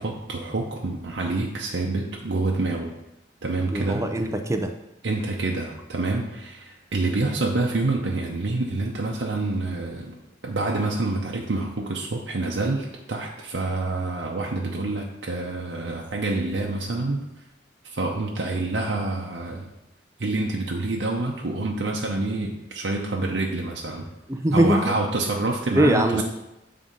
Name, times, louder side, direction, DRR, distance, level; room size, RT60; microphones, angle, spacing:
voice 1, 0.0-2.9 3.4-4.0 5.0-10.2 10.4-17.3 17.8-19.7 20.2-24.1 24.5-26.2, right 2 dB, 85° right, -1 dB, 0.8 m, -27 dB
voice 2, 3.7-4.7 24.3-24.9 25.7-26.2, right 1 dB, 15° right, 6 dB, 0.6 m, -21 dB
7.5 x 3.8 x 5.4 m, 0.93 s
head